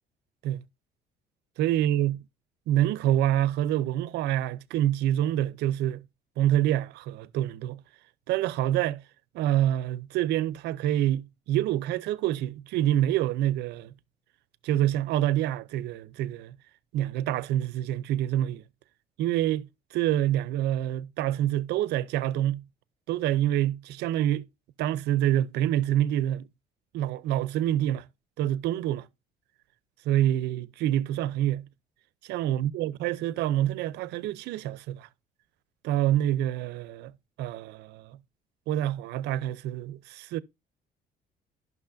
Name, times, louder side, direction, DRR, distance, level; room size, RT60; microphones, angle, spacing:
voice 1, 1.6-2.2 2.7-6.0 6.4-7.8 8.3-9.0 9.3-13.9 14.6-16.5 16.9-18.6 19.2-22.6 23.1-24.4 24.8-26.4 26.9-28.0 28.4-29.1 30.1-31.6 32.2-35.1 35.8-37.1 37.4-38.2 38.7-40.4, right 12 dB, 80° right, 0.5 m, -26 dB
11.5 x 6.1 x 2.5 m
cardioid pair, 110°, 17 cm